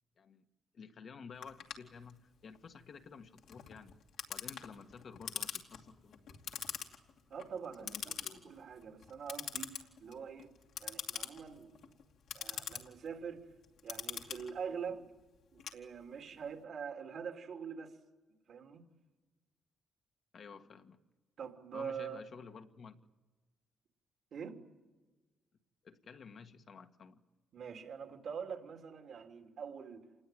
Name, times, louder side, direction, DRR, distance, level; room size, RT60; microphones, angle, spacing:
voice 1, 0.7-3.9 4.3-6.4 7.8-8.5 20.3-21.0 21.7-23.0 25.8-27.2, left 5 dB, 55° left, 1.6 m, -52 dB
Clock, 1.4-16.4, left 8 dB, 75° left, 2.6 m, -45 dB
voice 2, 7.3-10.5 10.8-11.8 12.3-13.4 13.8-15.1 15.5-18.0 18.5-18.9 21.4-22.2 24.3-24.6 27.5-30.0, right 6 dB, 65° right, 3.2 m, -44 dB
27.5 x 19.5 x 9.3 m
cardioid pair, 90°, 0 cm